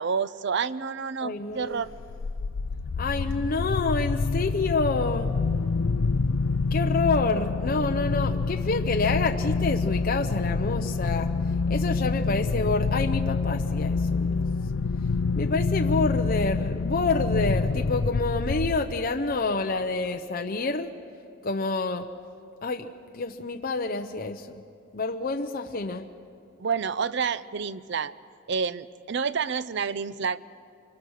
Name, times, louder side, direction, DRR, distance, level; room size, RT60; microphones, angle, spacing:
voice 1, 0.0-1.9 26.6-28.1 28.5-30.4, right 6 dB, 60° right, 16 dB, 0.5 m, -29 dB
voice 2, 1.2-1.8 3.0-5.3 6.7-11.3 11.7-14.3 15.4-20.9 21.4-22.0 22.6-22.9 23.1-24.6 24.9-26.1, left 3 dB, 45° left, 4 dB, 0.8 m, -28 dB
sound 1, 1.9-19.2, left 4 dB, 85° left, 0.5 m, -27 dB
24.5 x 24.5 x 6.5 m, 2.5 s
head